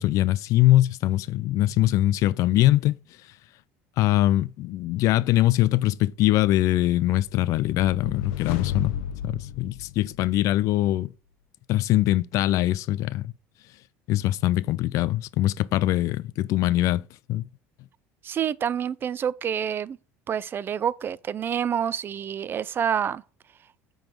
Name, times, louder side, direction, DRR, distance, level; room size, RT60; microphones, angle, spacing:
voice 1, 0.0-2.9 4.0-8.9 9.2-11.1 11.7-13.3 14.1-17.0 17.3-17.5, left 15 dB, 60° left, 0.4 m, -22 dB
sound 1, 7.3-10.5, left 9 dB, 80° left, 0.9 m, -33 dB
voice 2, 18.2-20.0 20.3-23.2, right 8 dB, 35° right, 0.4 m, -27 dB
8.8 x 4.0 x 4.4 m
supercardioid pair, 100°, 6 cm